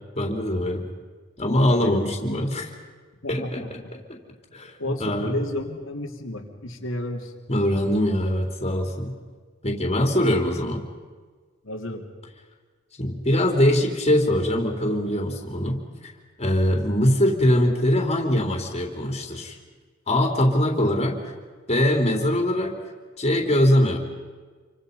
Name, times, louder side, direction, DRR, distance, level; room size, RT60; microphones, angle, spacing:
voice 1, 0.1-0.9 1.4-2.7 3.3-4.0 4.5-4.7 5.0-5.4 7.5-9.1 9.6-10.9 13.0-15.8 16.4-19.6 20.1-21.2 21.7-22.8 23.2-24.0, left 1 dB, 35° left, 2 dB, 3.7 m, -22 dB
voice 2, 1.7-2.1 3.2-3.7 4.8-7.3 11.6-12.1, left 1 dB, 90° left, 0 dB, 2.9 m, -32 dB
28.5 x 25.0 x 5.5 m, 1.5 s
head